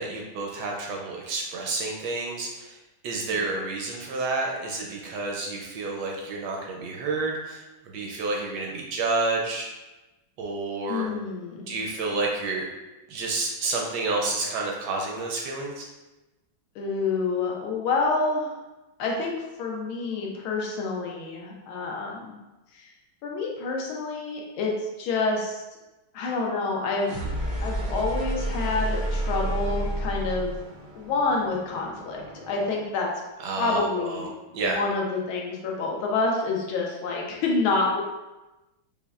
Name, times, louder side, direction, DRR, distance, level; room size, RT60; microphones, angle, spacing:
voice 1, 0.0-2.8 3.0-9.7 10.4-11.1 11.7-12.7 13.1-15.8 33.4-34.3 34.5-34.8, right 3 dB, 75° right, -1 dB, 1.0 m, -29 dB
voice 2, 10.9-11.7 16.7-18.5 19.0-19.3 19.6-22.3 22.7-22.9 23.2-25.6 26.1-27.2 27.6-30.5 30.9-33.1 33.6-38.0, left 3 dB, 85° left, -1 dB, 1.5 m, -28 dB
sound 1, 27.0-32.8, right 1 dB, 45° right, 0.6 m, -31 dB
5.3 x 2.1 x 2.3 m, 1.1 s
omnidirectional pair, 2.2 m